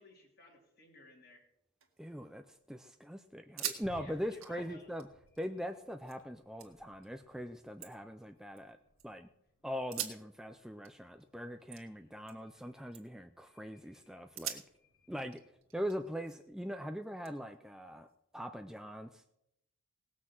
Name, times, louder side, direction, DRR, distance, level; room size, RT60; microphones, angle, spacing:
voice 1, 0.0-1.4 3.9-4.9 11.9-12.1, left 1 dB, 50° left, 0 dB, 3.2 m, -57 dB
sound 1, 1.5-2.6 2.9-3.0 3.4-3.9 4.1-6.2 6.6-7.1 7.5-9.0 9.8-12.6 12.9-13.3 13.8-13.9 14.3-16.6 17.2-18.4, right 11 dB, 85° right, 1.9 m, -46 dB
voice 2, 2.0-5.1 5.4-8.8 9.0-9.3 9.6-14.6 15.1-15.4 15.7-18.1 18.3-19.2, equal, 5° right, 7 dB, 0.4 m, -41 dB
sound 2, 2.5-16.9, left 1 dB, 70° left, 2.6 m, -64 dB
18.5 x 6.2 x 7.3 m, 0.83 s
head